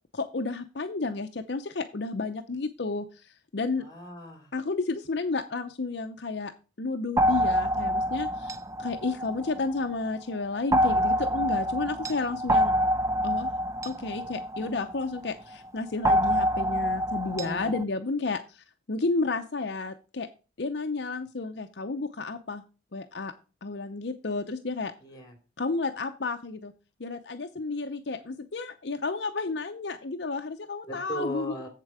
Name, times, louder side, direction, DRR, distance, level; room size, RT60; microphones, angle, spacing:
voice 1, 0.1-3.9 4.5-6.5 6.8-12.7 13.2-13.5 13.8-20.3 20.6-22.6 22.9-23.3 23.6-24.9 25.6-26.7 27.0-31.5, left 3 dB, 60° left, 6 dB, 0.7 m, -32 dB
voice 2, 3.8-4.5 17.4-17.8 25.0-25.3 30.9-31.7, equal, 20° left, 4 dB, 2.9 m, -37 dB
sound 1, 7.2-9.9 10.7-15.3 16.0-17.8, equal, 15° right, 0.4 m, -26 dB
7.7 x 7.5 x 4.8 m, 0.33 s
head